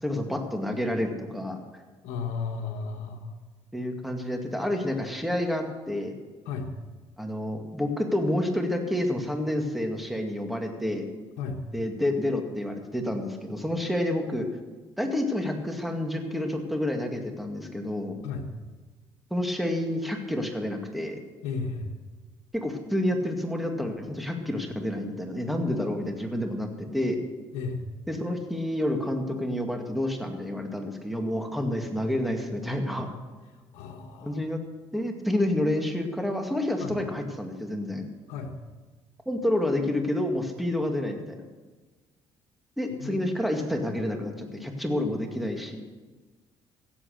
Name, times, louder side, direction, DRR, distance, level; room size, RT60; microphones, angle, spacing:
voice 1, 0.0-1.6 3.7-6.2 7.2-11.1 11.7-14.5 15.0-18.2 19.3-21.2 22.5-27.2 28.1-33.1 34.2-34.6 34.9-38.0 39.3-41.4 42.8-45.8, left 1 dB, ahead, 3 dB, 2.1 m, -29 dB
voice 2, 2.0-3.3 6.4-6.7 11.4-11.6 18.2-18.5 21.4-21.9 27.5-27.9 33.7-34.4 36.8-36.9 38.3-38.5 42.9-43.3, left 5 dB, 90° left, 1 dB, 1.4 m, -34 dB
16.5 x 7.7 x 6.6 m, 1.3 s
cardioid pair, 90°, 11 cm